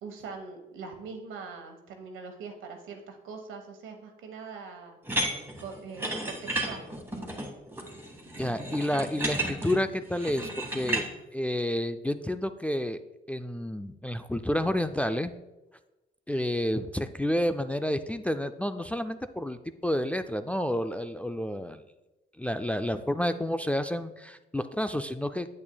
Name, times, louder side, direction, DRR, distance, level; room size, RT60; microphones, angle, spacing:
voice 1, 0.0-5.0 5.6-6.9 8.6-8.8, right 5 dB, 85° right, 4 dB, 1.2 m, -42 dB
sound 1, 5.1-11.1, right 2 dB, 10° right, 1.7 m, -33 dB
voice 2, 8.4-11.0 11.3-13.0 13.3-15.3 16.3-21.8 22.4-25.5, left 1 dB, 5° left, 9 dB, 0.3 m, -30 dB
8.6 x 8.2 x 2.2 m, 1.0 s
cardioid pair, 90°, 20 cm